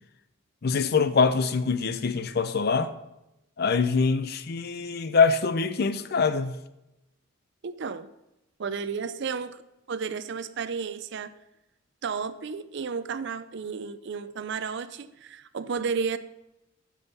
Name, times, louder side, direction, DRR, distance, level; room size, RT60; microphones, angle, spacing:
voice 1, 0.6-2.9 3.6-6.6, left 5 dB, 45° left, 0.5 m, -24 dB
voice 2, 7.6-8.1 8.6-9.6 9.9-11.3 12.0-16.2, right 5 dB, 55° right, 0.4 m, -32 dB
8.7 x 6.3 x 5.5 m
head